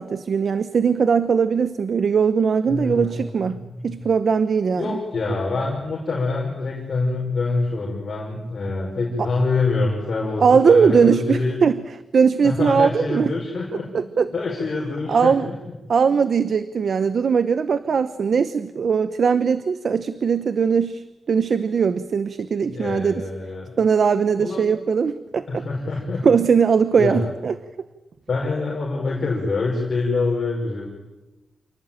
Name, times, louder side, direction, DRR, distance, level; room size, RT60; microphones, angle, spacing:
voice 1, 0.0-5.0 9.2-9.3 10.4-13.3 13.9-14.3 15.1-15.5 15.9-23.2 23.8-25.6 26.2-27.5, right 6 dB, 50° right, 13 dB, 0.8 m, -20 dB
voice 2, 2.7-3.2 3.5-4.0 4.8-11.6 12.4-15.5 22.6-23.7 24.4-24.6 25.5-26.3 27.0-27.3 28.3-30.9, left 3 dB, 40° left, -3 dB, 5.6 m, -25 dB
27.5 x 19.0 x 9.1 m, 1.1 s
wide cardioid pair, 175°, 0 cm